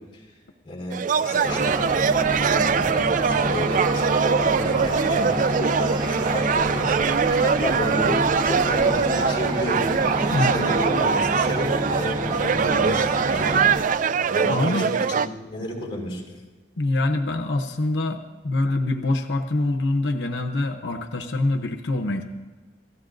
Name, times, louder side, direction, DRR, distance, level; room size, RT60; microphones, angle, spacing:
voice 1, 0.6-1.8 2.3-6.9 7.4-9.9 10.4-13.6 14.3-16.2, left 1 dB, 30° left, -3 dB, 4.7 m, -32 dB
sound 1, 0.9-15.3, right 6 dB, 50° right, 0.4 m, -22 dB
sound 2, 1.4-13.8, equal, 30° right, 1.3 m, -28 dB
voice 2, 10.3-10.9 14.5-14.9 16.8-22.2, left 2 dB, 90° left, 5 dB, 0.8 m, -25 dB
29.0 x 15.0 x 2.6 m, 1.3 s
head